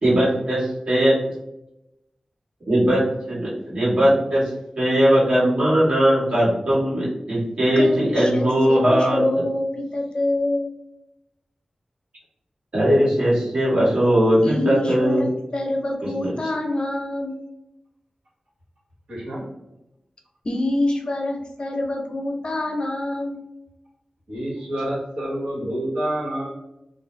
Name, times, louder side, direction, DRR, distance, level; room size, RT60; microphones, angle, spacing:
voice 1, 0.0-1.1 2.7-4.4 4.8-9.2 12.7-15.3 16.2-16.5, equal, 70° right, -8 dB, 1.4 m, -19 dB
voice 2, 7.7-10.7 14.4-17.3 20.4-23.4, left 1 dB, 50° left, 3 dB, 0.6 m, -26 dB
voice 3, 19.1-19.5 24.3-26.5, right 1 dB, 90° right, -7 dB, 1.2 m, -28 dB
2.5 x 2.1 x 3.1 m, 0.89 s
cardioid pair, 45°, 2 cm